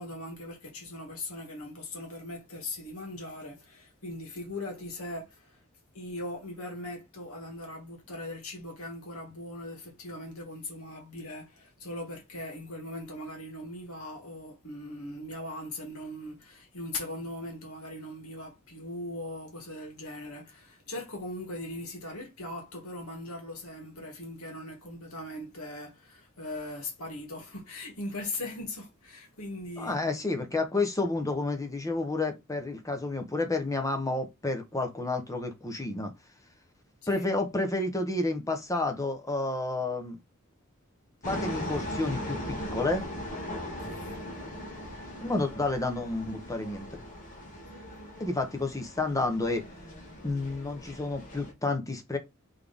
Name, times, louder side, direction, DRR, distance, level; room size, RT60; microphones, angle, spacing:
voice 1, 0.0-5.6 5.9-30.0 37.1-37.3 43.8-44.2, left 1 dB, 90° left, 2.0 m, -40 dB
voice 2, 29.8-36.1 37.1-40.2 41.2-43.1 45.2-46.9 48.2-49.6 50.2-52.2, left 2 dB, 15° left, 0.9 m, -30 dB
sound 1, 41.2-51.5, equal, 40° left, 1.8 m, -39 dB
4.1 x 3.6 x 3.5 m
head